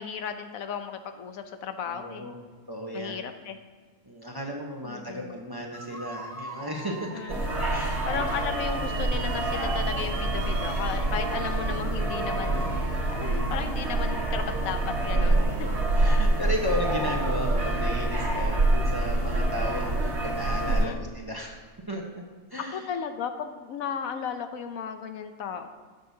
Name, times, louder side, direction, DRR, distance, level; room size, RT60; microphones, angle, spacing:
voice 1, 0.0-2.3 2.9-3.6 4.8-5.4 6.9-7.5 8.0-15.4 16.9-17.2 20.7-21.0 22.7-25.7, left 7 dB, 80° left, 8 dB, 1.1 m, -35 dB
voice 2, 1.8-2.3 2.7-3.1 4.0-7.3 7.7-8.2 11.1-11.8 13.1-13.5 15.1-21.6 21.9-22.2 22.5-22.8, left 1 dB, 20° right, 0 dB, 0.9 m, -35 dB
sound 1, 5.7-11.4 11.8-14.1 14.4-17.3, equal, 5° left, 0.5 m, -43 dB
sound 2, 6.2-11.8, right 10 dB, 80° right, 1.0 m, -43 dB
sound 3, 7.3-20.8, right 2 dB, 55° right, 1.5 m, -26 dB
17.5 x 6.5 x 2.7 m, 1.4 s
omnidirectional pair, 1.4 m